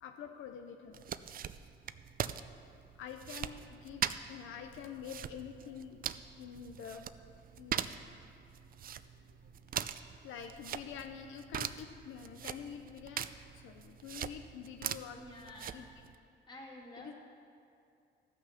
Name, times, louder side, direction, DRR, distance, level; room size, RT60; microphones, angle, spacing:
voice 1, 0.0-1.0 3.0-4.0 4.3-6.1 6.4-7.1 7.6-7.9 10.2-13.2 13.6-15.9 17.0-17.1, left 8 dB, 80° left, 5 dB, 0.7 m, -47 dB
sound 1, 0.9-16.1, right 9 dB, 45° right, 0.4 m, -42 dB
voice 2, 15.1-15.9 16.5-17.1, left 1 dB, 20° left, -3 dB, 2.6 m, -50 dB
14.0 x 6.2 x 5.8 m, 2.4 s
cardioid pair, 90°, 20 cm